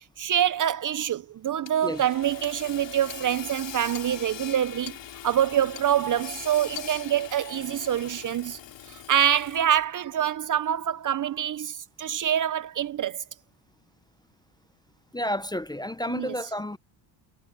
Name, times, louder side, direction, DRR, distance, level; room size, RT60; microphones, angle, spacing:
voice 1, 0.2-5.0 5.2-8.6 8.9-13.2 16.1-16.3, right 10 dB, 40° right, 0.6 m, -26 dB
Hammer / Sawing, 1.7-9.8, left 10 dB, 60° left, 2.9 m, -41 dB
voice 2, 15.1-16.8, left 1 dB, 10° left, 0.6 m, -30 dB
cardioid pair, 105°, 49 cm